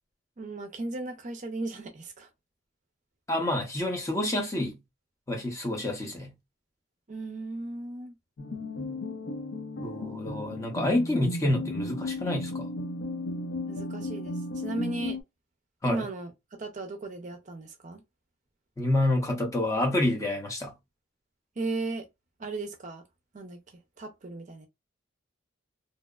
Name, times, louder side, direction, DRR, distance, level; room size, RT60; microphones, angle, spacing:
voice 1, 0.4-2.3 7.1-8.1 13.7-15.2 15.8-18.0 21.6-22.1 22.4-23.0 23.3-23.6 24.0-24.7, right 2 dB, 40° right, 0.4 m, -36 dB
voice 2, 3.3-4.8 5.3-6.3 9.8-12.7 15.8-16.1 18.8-20.7, left 1 dB, 15° left, 0.6 m, -28 dB
sound 1, 8.4-15.2, left 2 dB, 75° left, 0.5 m, -35 dB
2.7 x 2.0 x 2.3 m
head